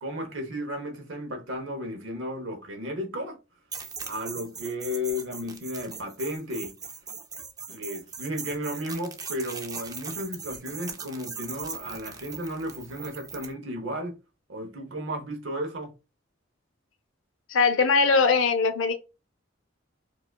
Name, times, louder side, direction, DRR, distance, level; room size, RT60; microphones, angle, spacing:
voice 1, 0.0-3.4 4.1-6.8 7.7-14.2 14.5-16.0, equal, 80° right, 0.8 m, -34 dB
sound 1, 3.7-13.5, right 5 dB, 20° right, 0.4 m, -40 dB
voice 2, 17.5-18.9, left 4 dB, 85° left, 0.5 m, -21 dB
4.8 x 2.3 x 2.3 m
head